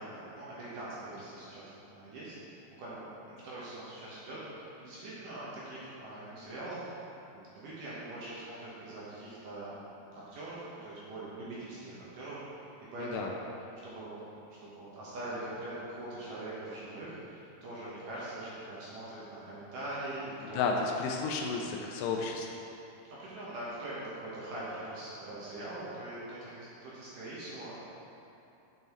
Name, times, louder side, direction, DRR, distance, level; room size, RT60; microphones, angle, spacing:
voice 1, 0.0-6.9 7.3-9.7 10.1-12.4 12.9-13.4 13.8-14.2 14.6-20.7 21.6-21.7 23.2-27.7, right 1 dB, 70° right, -9 dB, 2.1 m, -42 dB
voice 2, 13.0-13.3 20.5-22.5, left 4 dB, 90° left, 1 dB, 2.4 m, -32 dB
9.4 x 5.4 x 3.1 m, 2.9 s
omnidirectional pair, 5.3 m